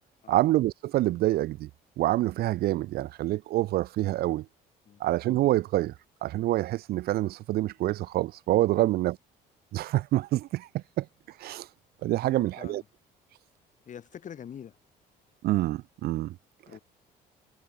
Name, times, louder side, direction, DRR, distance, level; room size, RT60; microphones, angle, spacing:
voice 1, 0.3-1.7 2.0-4.5 5.0-5.9 6.2-9.2 9.7-11.1 11.4-11.7 12.0-12.8 15.4-16.4, right 16 dB, 65° right, 0.5 m, -26 dB
voice 2, 12.2-12.8 13.9-14.8 16.7-16.8, left 8 dB, 50° left, 5.7 m, -45 dB
cardioid pair, 110°, 17 cm